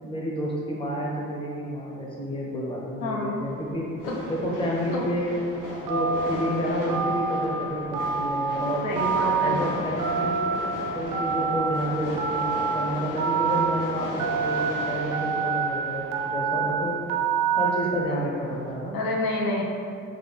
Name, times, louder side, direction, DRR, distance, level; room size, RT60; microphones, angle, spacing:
voice 1, 0.0-3.9 4.3-5.4 5.8-8.9 9.4-10.4 10.9-17.0 17.5-19.0, equal, 15° left, -3 dB, 0.6 m, -30 dB
voice 2, 3.0-3.3 4.1-4.2 4.9-5.1 8.8-9.6 18.9-19.6, left 2 dB, 90° left, 0 dB, 0.6 m, -28 dB
sound 1, 3.3-18.7, left 1 dB, 70° left, 1.1 m, -37 dB
Telephone, 5.9-6.3 6.9-7.4 7.9-8.5 9.0-9.5 10.0-10.6 11.1-11.7 12.2-12.7 13.2-13.7 14.2-14.7 15.1-15.7 16.1-16.7 17.1-17.7, right 6 dB, 85° right, 0.5 m, -26 dB
3.3 x 2.2 x 3.4 m, 2.4 s
cardioid pair, 110°, 33 cm